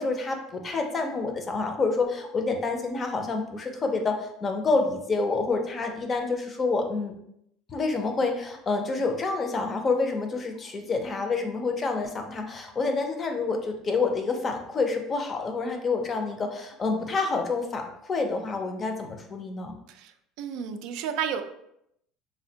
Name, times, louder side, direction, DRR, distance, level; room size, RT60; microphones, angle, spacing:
voice 1, 0.0-7.2 7.7-19.8, left 3 dB, 30° left, 4 dB, 0.5 m, -28 dB
voice 2, 19.9-21.4, right 8 dB, 70° right, 8 dB, 0.3 m, -32 dB
3.3 x 2.1 x 2.7 m, 0.77 s
supercardioid pair, 120°, 0 cm